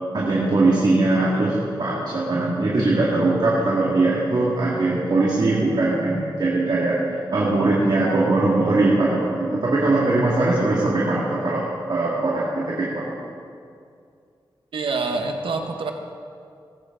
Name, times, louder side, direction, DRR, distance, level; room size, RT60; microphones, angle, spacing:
voice 1, 0.1-13.1, right 2 dB, 60° right, -6 dB, 2.3 m, -21 dB
voice 2, 14.7-15.9, right 3 dB, 80° right, 4 dB, 1.2 m, -26 dB
19.0 x 9.0 x 3.9 m, 2.3 s
wide cardioid pair, 80°, 9 cm